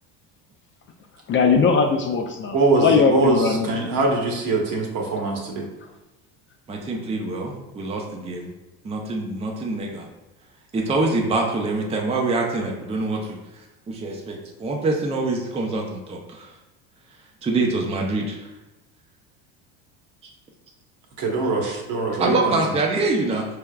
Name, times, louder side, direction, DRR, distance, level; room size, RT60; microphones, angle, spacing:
voice 1, 1.3-3.7, left 5 dB, 35° left, 3 dB, 0.4 m, -19 dB
voice 2, 2.5-5.7 21.2-22.6, right 3 dB, 55° right, 0 dB, 1.2 m, -22 dB
voice 3, 6.7-8.5 8.8-10.1 10.7-13.4 13.9-16.5 17.4-18.5 22.2-23.5, right 3 dB, 15° right, 0 dB, 0.5 m, -25 dB
4.5 x 3.4 x 2.3 m, 1.0 s
supercardioid pair, 95°, 38 cm